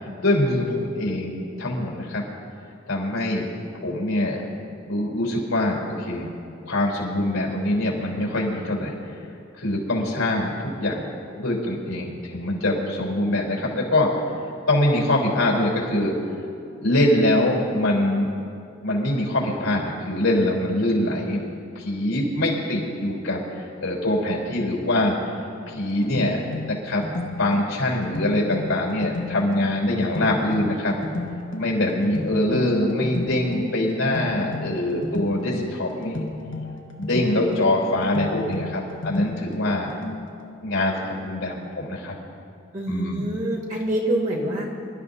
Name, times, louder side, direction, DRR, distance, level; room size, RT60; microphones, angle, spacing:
voice 1, 0.2-2.2 2.9-3.5 3.8-4.4 4.8-6.3 6.7-8.9 9.6-11.1 11.4-14.1 14.7-16.1 16.7-18.4 18.8-21.4 21.8-25.2 25.7-26.4 26.7-27.0 27.4-30.9 31.6-36.2 36.9-39.9 40.6-42.1 42.9-43.2, left 1 dB, 85° left, -2 dB, 3.9 m, -23 dB
sound 1, 25.7-40.5, left 2 dB, 65° left, 1.2 m, -33 dB
voice 2, 42.7-44.7, right 1 dB, 35° right, -4 dB, 2.2 m, -26 dB
26.5 x 13.0 x 2.7 m, 2.5 s
head